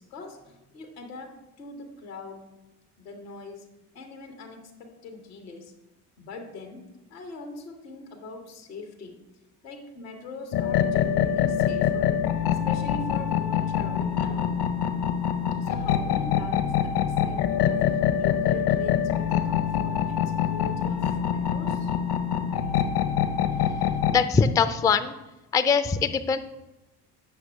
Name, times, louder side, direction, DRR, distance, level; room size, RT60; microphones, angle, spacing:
voice 1, 0.0-2.5 3.0-3.7 3.9-5.7 6.2-6.8 7.1-9.2 9.6-12.2 12.6-14.6 15.6-21.9, left 3 dB, 85° left, 5 dB, 1.2 m, -42 dB
sound 1, 10.5-24.2, left 9 dB, 55° left, 0.9 m, -25 dB
voice 2, 24.1-25.1 25.5-26.4, left 6 dB, 10° left, 10 dB, 0.3 m, -22 dB
8.7 x 6.1 x 3.4 m, 1.0 s
hypercardioid pair, 50°, 47 cm